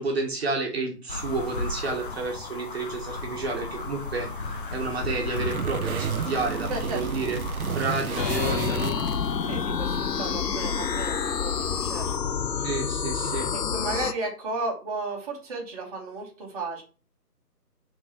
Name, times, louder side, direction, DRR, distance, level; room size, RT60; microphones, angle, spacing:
voice 1, 0.0-4.3 4.7-7.4 7.7-9.0 12.6-13.5, right 3 dB, 40° right, 1 dB, 1.5 m, -30 dB
sound 1, 1.1-12.2, left 3 dB, 35° left, 0.8 m, -36 dB
sound 2, 5.3-9.6, right 6 dB, 60° right, 0.7 m, -32 dB
voice 2, 6.7-7.3 9.4-12.7 13.2-16.8, right 3 dB, 25° right, -3 dB, 1.6 m, -34 dB
sound 3, 8.2-14.1, left 6 dB, 80° left, 0.8 m, -28 dB
5.6 x 4.0 x 5.5 m, 0.35 s
figure-of-eight pair, 150°, 48 cm